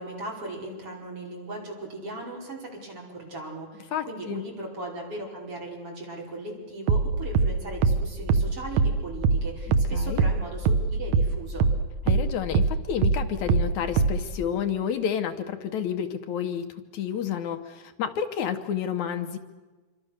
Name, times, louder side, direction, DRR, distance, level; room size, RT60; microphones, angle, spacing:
voice 1, 0.0-11.7, right 2 dB, 45° right, -1 dB, 5.9 m, -38 dB
voice 2, 3.9-4.4 9.9-10.2 12.1-19.4, left 8 dB, 70° left, 8 dB, 2.3 m, -30 dB
sound 1, 6.9-11.8 12.1-14.3, right 4 dB, 70° right, 2.0 m, -22 dB
27.0 x 24.5 x 6.6 m, 1.3 s
omnidirectional pair, 3.6 m